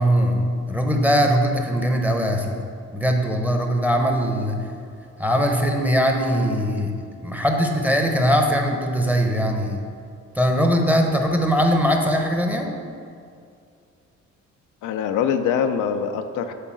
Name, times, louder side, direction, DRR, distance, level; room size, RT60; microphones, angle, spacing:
voice 1, 0.0-2.6 2.9-4.7 5.2-6.9 7.2-9.8 10.3-12.7, equal, 5° right, 2 dB, 0.9 m, -21 dB
voice 2, 14.8-16.5, left 7 dB, 85° left, 7 dB, 0.5 m, -24 dB
7.7 x 3.6 x 6.2 m, 2.4 s
cardioid pair, 90°, 30 cm